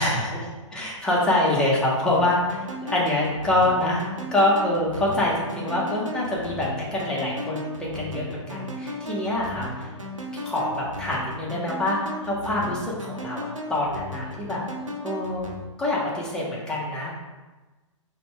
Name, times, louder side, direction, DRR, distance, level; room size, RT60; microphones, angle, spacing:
voice 1, 0.0-9.9 10.4-14.6 15.0-15.4 15.8-17.1, left 1 dB, 5° left, -6 dB, 0.8 m, -25 dB
sound 1, 2.1-15.6, left 1 dB, 80° right, 0.6 m, -36 dB
3.9 x 2.2 x 4.4 m, 1.2 s
figure-of-eight pair, 115°, 16 cm